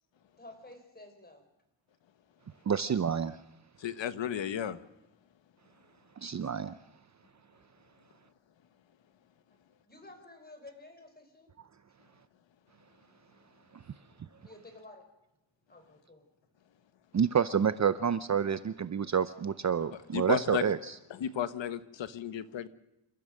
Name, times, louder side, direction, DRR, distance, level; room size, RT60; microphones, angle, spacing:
voice 1, 0.4-1.4 9.8-11.5 14.4-15.0 15.7-16.3, left 2 dB, 20° left, 5 dB, 5.0 m, -52 dB
voice 2, 2.7-3.4 6.2-6.7 17.1-21.0, right 7 dB, 40° right, 13 dB, 0.7 m, -28 dB
voice 3, 3.8-4.8 20.1-20.6 21.2-22.7, left 9 dB, 75° left, 13 dB, 1.3 m, -33 dB
28.5 x 14.5 x 6.5 m, 0.92 s
cardioid pair, 105°, 45 cm